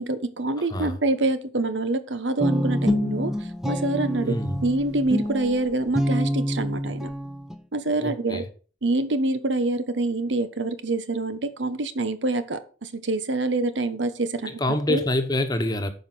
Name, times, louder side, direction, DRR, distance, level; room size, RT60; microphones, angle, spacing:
voice 1, 0.0-3.3 3.6-4.4 4.6-7.1 7.7-8.4 8.8-14.6 14.9-15.0, right 2 dB, 85° right, 1.0 m, -26 dB
voice 2, 0.6-1.0 4.2-4.6 8.0-8.5 14.4-15.9, left 1 dB, 20° left, 1.1 m, -26 dB
Guitar, 2.4-7.6, equal, 5° right, 0.6 m, -26 dB
9.4 x 5.2 x 6.1 m
head